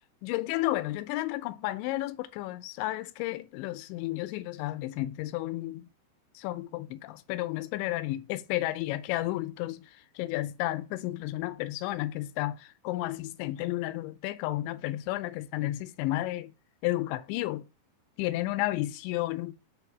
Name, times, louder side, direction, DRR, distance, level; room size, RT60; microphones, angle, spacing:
voice 1, 0.2-5.9 6.4-16.5 16.8-17.7 18.2-19.5, left 16 dB, 85° left, 2.9 m, -32 dB
7.1 x 3.4 x 5.9 m
omnidirectional pair, 5.2 m